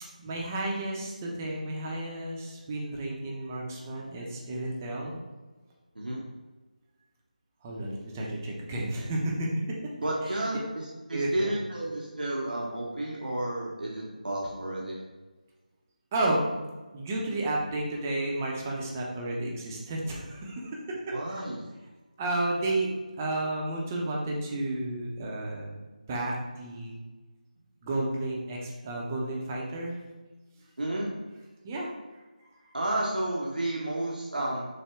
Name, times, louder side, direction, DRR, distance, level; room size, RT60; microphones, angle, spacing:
voice 1, 0.2-5.2 7.6-9.6 10.2-10.4 11.1-11.6 16.1-16.4 16.9-21.1 22.2-22.9 23.2-25.7 26.1-27.0 27.8-30.0 31.6-31.9 32.4-32.5, right 1 dB, 20° right, -2 dB, 0.6 m, -32 dB
voice 2, 10.0-15.0 21.1-21.6 30.8-31.1 32.7-34.6, right 1 dB, 85° right, -3 dB, 0.9 m, -31 dB
6.4 x 2.1 x 3.4 m, 1.2 s
figure-of-eight pair, 165°, 5 cm